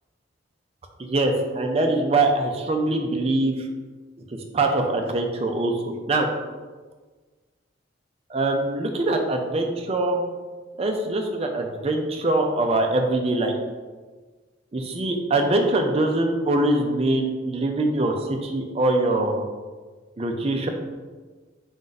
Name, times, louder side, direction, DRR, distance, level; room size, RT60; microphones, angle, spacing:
voice 1, 1.0-3.7 4.3-6.3 8.3-10.2 10.8-13.6 14.7-19.4 20.2-20.7, right 2 dB, 30° right, 3 dB, 0.4 m, -23 dB
4.3 x 2.5 x 3.9 m, 1.4 s
head